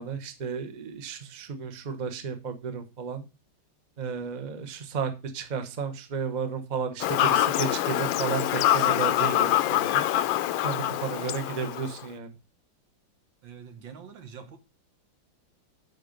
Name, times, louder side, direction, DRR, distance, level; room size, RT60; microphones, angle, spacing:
voice 1, 0.0-3.3 4.0-10.0 10.6-12.3, right 5 dB, 35° right, 0.7 m, -33 dB
Fowl / Bird vocalization bird call bird song, 7.0-12.0, left 13 dB, 85° left, 1.3 m, -25 dB
voice 2, 13.4-14.6, right 6 dB, 80° right, 2.0 m, -45 dB
8.1 x 5.0 x 5.1 m
omnidirectional pair, 2.0 m